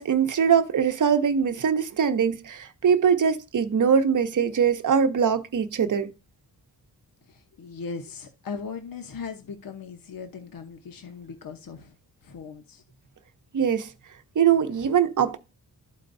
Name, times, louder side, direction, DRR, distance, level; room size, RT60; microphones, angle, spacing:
voice 1, 0.0-6.1 13.5-13.9 14.4-15.4, right 7 dB, 50° right, 0.8 m, -22 dB
voice 2, 7.2-11.9 12.2-12.8, left 5 dB, 55° left, 1.0 m, -38 dB
12.5 x 4.4 x 2.6 m
wide cardioid pair, 150°, 40 cm